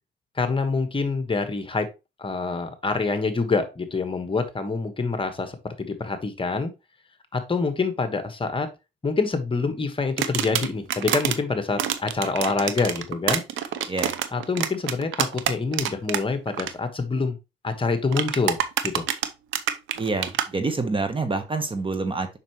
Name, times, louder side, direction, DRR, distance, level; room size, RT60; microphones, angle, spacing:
voice 1, 0.4-1.9 2.2-6.7 7.3-8.7 9.0-13.4 14.3-17.4 17.6-18.6 18.8-19.0, left 4 dB, 25° left, 8 dB, 1.3 m, -26 dB
sound 1, 10.2-11.4 11.8-16.2 16.5-16.7 18.1-20.5, right 10 dB, 80° right, 0.7 m, -26 dB
voice 2, 20.0-22.4, right 3 dB, 25° right, 9 dB, 1.1 m, -27 dB
7.3 x 5.6 x 3.0 m, 0.25 s
cardioid pair, 90°, 20 cm